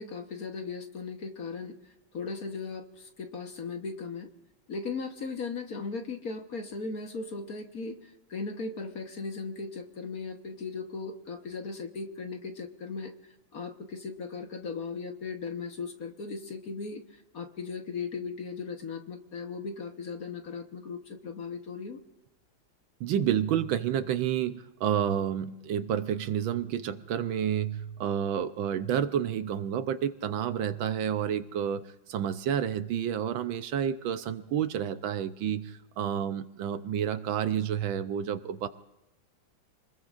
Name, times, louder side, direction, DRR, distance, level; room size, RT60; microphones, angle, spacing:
voice 1, 0.0-1.7 2.1-4.3 4.7-13.1 13.5-17.0 17.3-22.0, left 4 dB, 50° left, 4 dB, 1.5 m, -37 dB
voice 2, 23.0-31.8 32.1-38.7, right 9 dB, 75° right, 10 dB, 1.4 m, -30 dB
28.0 x 20.5 x 2.5 m, 1.0 s
omnidirectional pair, 2.3 m